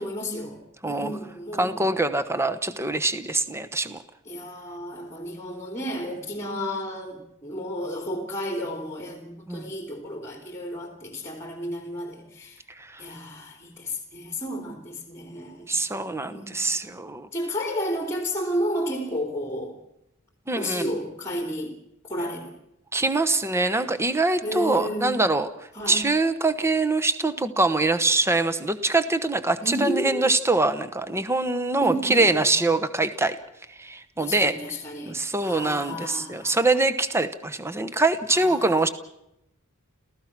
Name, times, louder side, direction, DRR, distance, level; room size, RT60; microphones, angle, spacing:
voice 1, 0.0-1.8 4.3-12.6 13.0-15.7 16.3-16.9 17.3-19.8 20.5-21.7 22.0-22.6 24.4-25.2 25.7-26.0 29.6-30.2 31.8-32.6 34.2-36.6 38.3-38.8, equal, 10° left, 4 dB, 3.3 m, -32 dB
voice 2, 1.6-4.0 9.5-9.7 12.8-13.1 15.7-17.3 20.5-20.9 22.9-25.5 25.9-33.4 33.8-34.5 35.1-38.9, right 2 dB, 10° right, 12 dB, 1.0 m, -24 dB
29.5 x 15.5 x 6.0 m, 0.82 s
head